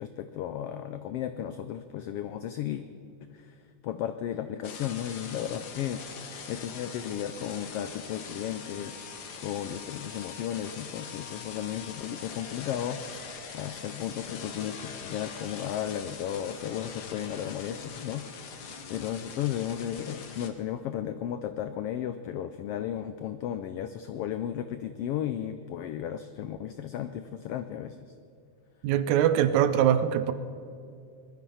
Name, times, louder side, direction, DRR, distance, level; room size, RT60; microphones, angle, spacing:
voice 1, 0.0-2.8 3.3-3.6 3.8-6.0 6.5-9.0 9.4-18.3 18.9-28.0, left 10 dB, 85° left, 10 dB, 1.3 m, -34 dB
sound 1, 4.6-20.5, left 6 dB, 60° left, 1.1 m, -42 dB
voice 2, 28.8-30.3, right 10 dB, 80° right, 12 dB, 2.0 m, -23 dB
20.0 x 12.0 x 5.7 m, 2.4 s
omnidirectional pair, 3.3 m